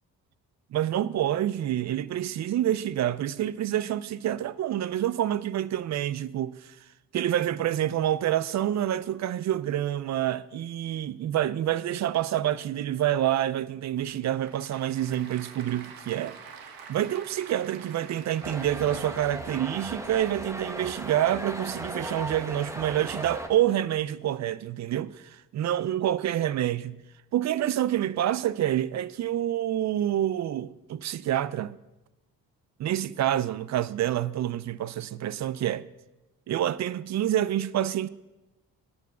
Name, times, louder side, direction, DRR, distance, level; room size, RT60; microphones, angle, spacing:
voice 1, 0.7-6.5 7.1-16.3 16.9-27.0 27.3-31.8 32.8-35.8 36.5-38.1, right 12 dB, 50° right, 0.4 m, -27 dB
Applause / Crowd, 14.0-20.1, right 6 dB, 75° right, 1.5 m, -47 dB
sound 1, 18.4-23.5, right 1 dB, 10° right, 1.0 m, -37 dB
9.2 x 7.1 x 7.2 m
cardioid pair, 100°, 36 cm